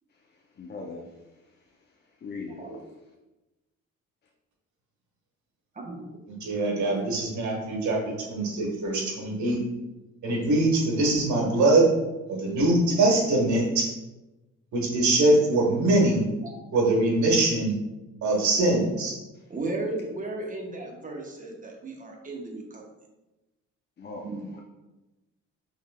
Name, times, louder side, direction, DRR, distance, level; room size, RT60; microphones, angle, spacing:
voice 1, 0.6-1.0 2.2-2.6 24.0-24.2 24.5-24.6, left 4 dB, 35° left, 0 dB, 0.6 m, -38 dB
voice 2, 2.5-2.8 5.8-6.2 16.4-16.5 19.5-22.8 24.2-24.4, right 2 dB, 25° right, 1 dB, 0.9 m, -35 dB
voice 3, 6.4-9.6 10.2-11.8 12.3-13.9 14.7-16.2 16.7-17.8 18.2-19.1, right 2 dB, 70° right, -2 dB, 1.4 m, -23 dB
5.5 x 3.2 x 2.2 m, 1.0 s
cardioid pair, 90°, 30 cm